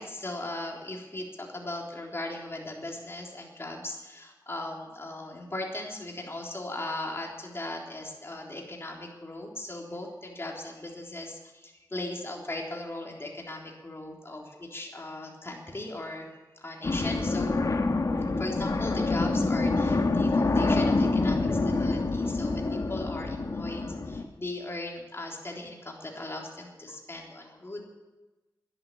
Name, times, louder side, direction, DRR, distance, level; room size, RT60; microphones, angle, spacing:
voice 1, 0.0-16.3 16.6-17.5 18.4-27.8, left 2 dB, 35° left, -1 dB, 3.6 m, -38 dB
sound 1, 16.8-24.3, left 3 dB, 50° left, 1.4 m, -26 dB
11.5 x 11.0 x 9.8 m, 1.1 s
wide cardioid pair, 75°, 8 cm